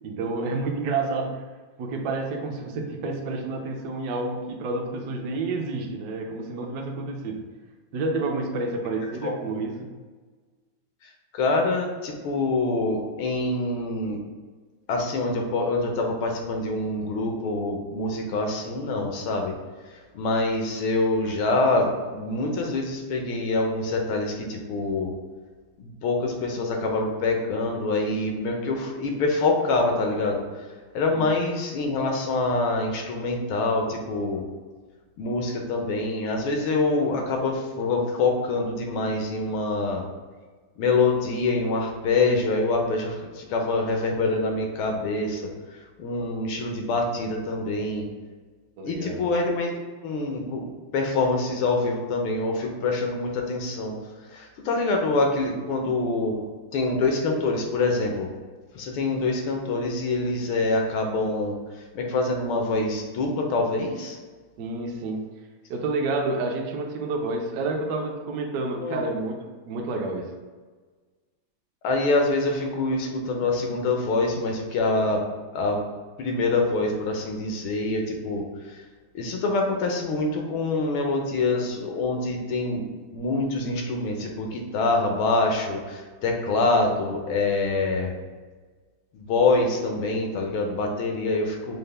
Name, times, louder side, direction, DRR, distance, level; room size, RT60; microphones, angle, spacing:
voice 1, 0.0-1.4 1.8-7.4 7.9-9.9 31.2-31.3 48.8-49.3 64.6-65.2 65.7-70.3, right 3 dB, 75° right, 1 dB, 0.9 m, -29 dB
voice 2, 11.0-14.2 14.9-19.6 19.9-25.1 25.8-30.6 30.9-34.5 35.2-40.1 40.8-48.1 48.8-49.7 50.0-54.0 54.3-56.4 56.7-58.3 58.7-64.2 68.8-69.0 71.8-75.2 75.5-75.8 76.2-78.8 79.1-82.8 83.1-88.1 89.1-91.8, left 3 dB, 85° left, 2 dB, 1.5 m, -25 dB
5.3 x 2.1 x 3.3 m, 1.4 s
omnidirectional pair, 2.2 m